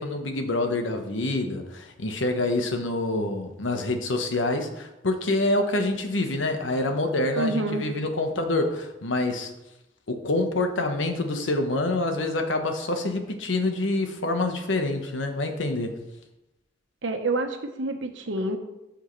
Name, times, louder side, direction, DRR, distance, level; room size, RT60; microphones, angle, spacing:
voice 1, 0.0-9.5 10.1-16.0, left 2 dB, 85° left, 5 dB, 1.2 m, -26 dB
voice 2, 7.4-7.8 17.0-18.6, right 2 dB, 85° right, 5 dB, 1.2 m, -27 dB
13.0 x 6.5 x 3.2 m, 0.94 s
head